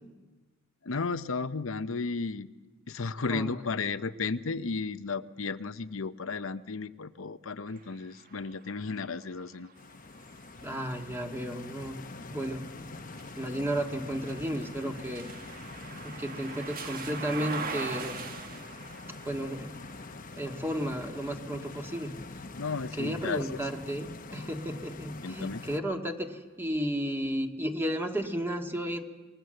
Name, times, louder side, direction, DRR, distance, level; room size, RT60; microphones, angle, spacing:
voice 1, 0.8-2.5 2.9-9.7 22.6-23.6 25.2-25.6, left 4 dB, 70° left, 10 dB, 0.8 m, -34 dB
sound 1, 7.7-23.6 24.2-25.4, right 4 dB, 45° right, 1.5 m, -45 dB
Stream, 9.8-25.8, left 3 dB, 40° left, 1.0 m, -45 dB
voice 2, 10.6-12.0 12.3-12.9 13.4-15.3 16.0-18.2 19.2-19.7 20.4-22.1 22.9-29.0, equal, 10° right, 3 dB, 1.8 m, -33 dB
26.5 x 22.0 x 7.8 m, 1.3 s
head